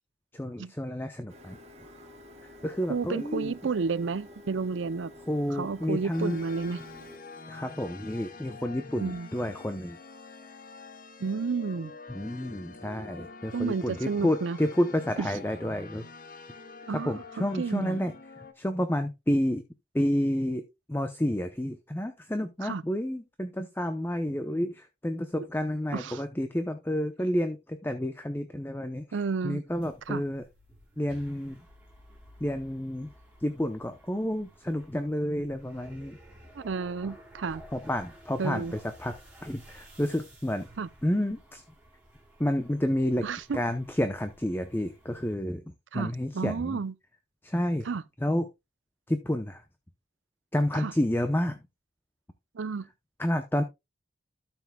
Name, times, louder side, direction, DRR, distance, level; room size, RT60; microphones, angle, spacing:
voice 1, 0.3-1.6 2.6-3.5 5.3-6.4 7.5-10.0 12.1-16.1 16.9-18.1 18.4-19.6 19.9-29.0 29.4-30.4 31.0-31.6 32.4-33.1 33.4-36.2 37.7-39.1 39.4-40.7 41.0-41.6 42.4-43.2 43.5-45.6 45.9-46.8 47.4-47.9 48.2-48.5 49.1-49.6 50.5-51.6 53.2-53.6, left 1 dB, 10° left, 0.7 m, -30 dB
Printer, 1.3-7.2, left 1 dB, 35° right, 2.6 m, -50 dB
voice 2, 2.9-5.1 5.5-6.8 9.0-9.3 11.2-11.9 13.5-14.6 15.2-15.3 16.9-18.1 22.6-22.8 25.9-26.2 29.1-29.6 30.1-30.2 36.5-37.6 38.4-38.7 40.8-40.9 43.2-43.6 45.9-46.9 47.8-48.0 50.7-50.9 52.5-52.9, right 5 dB, 90° right, 0.5 m, -31 dB
sound 1, 6.1-18.5, left 4 dB, 45° left, 1.0 m, -46 dB
sound 2, 29.7-45.4, equal, 5° right, 3.4 m, -54 dB
12.5 x 7.1 x 2.2 m
head